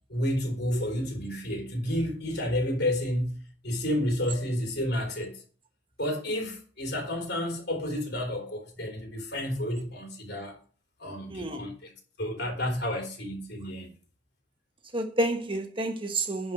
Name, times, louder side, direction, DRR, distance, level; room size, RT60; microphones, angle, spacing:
voice 1, 0.1-5.4 6.0-10.6 11.0-11.9 12.2-13.9, left 1 dB, 60° left, 3.5 m, -30 dB
voice 2, 11.3-11.7 14.9-16.5, right 1 dB, 30° right, 1.4 m, -29 dB
10.5 x 4.7 x 6.3 m
head